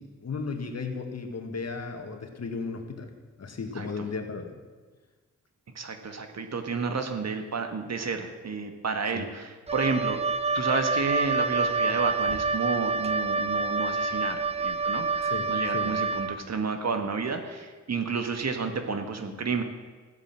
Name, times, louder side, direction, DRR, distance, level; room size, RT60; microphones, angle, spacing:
voice 1, 0.0-3.1 3.4-4.5 9.1-9.3 15.2-15.4 15.7-15.9, left 4 dB, 55° left, 5 dB, 2.0 m, -35 dB
voice 2, 3.7-4.1 5.7-10.2 10.5-19.6, right 4 dB, 55° right, 6 dB, 1.7 m, -31 dB
Wind instrument woodwind instrument, 9.7-16.4, right 3 dB, 20° right, 0.5 m, -27 dB
14.5 x 9.8 x 7.5 m, 1.4 s
wide cardioid pair, 90°, 31 cm